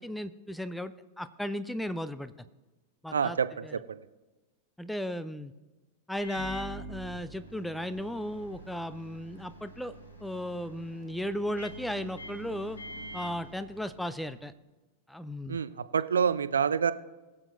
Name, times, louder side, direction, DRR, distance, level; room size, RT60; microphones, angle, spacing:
voice 1, 0.0-2.3 3.0-3.8 4.8-5.5 6.1-9.9 10.2-12.8 13.1-14.5 15.1-15.6, equal, 5° left, 13 dB, 0.5 m, -35 dB
voice 2, 3.1-4.0 15.5-16.9, right 7 dB, 70° right, 14 dB, 0.4 m, -27 dB
Microwave oven, 6.1-14.3, right 1 dB, 75° left, 1.9 m, -46 dB
22.0 x 7.4 x 2.6 m, 1.2 s
figure-of-eight pair, 90°, 0 cm